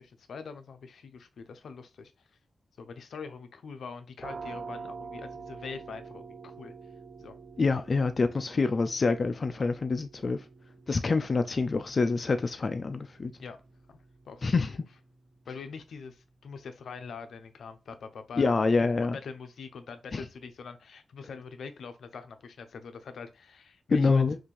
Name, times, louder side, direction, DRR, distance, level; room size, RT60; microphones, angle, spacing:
voice 1, 0.0-2.1 2.8-6.7 7.2-7.4 13.4-13.6 13.9-14.0 14.3-14.8 15.5-18.5 18.9-24.2, left 5 dB, 80° left, 0.6 m, -43 dB
sound 1, 4.2-15.7, right 4 dB, 40° right, 0.5 m, -47 dB
voice 2, 7.6-10.4 10.9-13.3 14.4-14.7 18.4-19.2 20.1-20.2 23.9-24.4, left 4 dB, 40° left, 0.4 m, -26 dB
5.8 x 2.5 x 3.2 m
wide cardioid pair, 105°, 0 cm